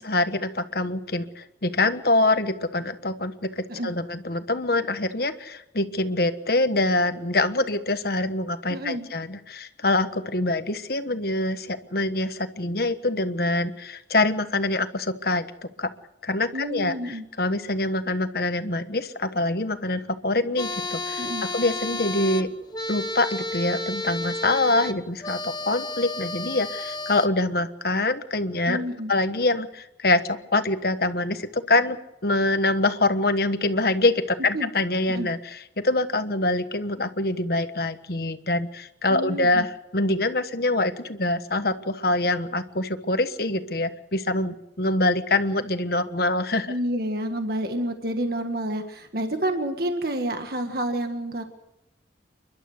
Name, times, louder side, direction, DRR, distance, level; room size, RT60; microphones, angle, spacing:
voice 1, 0.0-15.5 15.8-15.9 16.2-21.3 21.5-22.5 22.9-46.7, left 2 dB, 55° left, 9 dB, 1.3 m, -25 dB
voice 2, 8.7-9.1 16.5-17.2 21.2-21.4 28.7-29.1 34.5-34.7 35.1-35.3 39.1-39.6 46.7-51.5, right 1 dB, 55° right, 5 dB, 1.8 m, -29 dB
sound 1, 20.6-27.3, left 2 dB, 20° left, 1.1 m, -32 dB
29.5 x 12.0 x 8.0 m, 0.85 s
head